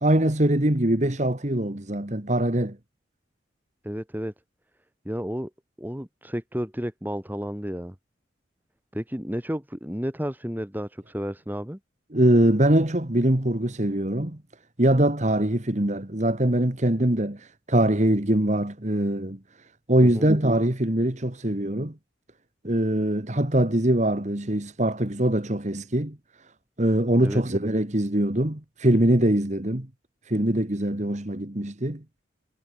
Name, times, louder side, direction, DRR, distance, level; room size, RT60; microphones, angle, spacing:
voice 1, 0.0-2.8 12.1-14.4 14.8-19.4 19.9-21.9 22.6-26.2 26.8-29.9 30.3-32.0, right 1 dB, 40° right, 1.9 m, -23 dB
voice 2, 3.8-4.3 5.1-5.5 5.8-7.9 8.9-11.8 20.0-20.3 27.2-27.4, equal, 10° right, 2.2 m, -32 dB
head